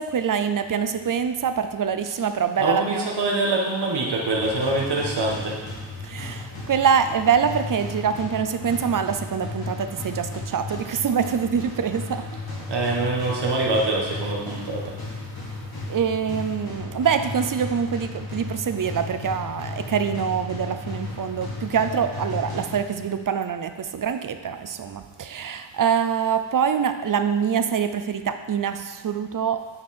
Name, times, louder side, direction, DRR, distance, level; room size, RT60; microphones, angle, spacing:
voice 1, 0.0-3.1 6.0-12.3 15.9-29.7, right 7 dB, 45° right, 9 dB, 0.6 m, -25 dB
voice 2, 2.6-5.6 12.7-14.9, right 2 dB, 60° right, -2 dB, 1.5 m, -24 dB
sound 1, 4.2-23.2, left 2 dB, 50° left, 2.5 m, -35 dB
9.0 x 5.4 x 4.4 m, 1.3 s
wide cardioid pair, 105°, 45 cm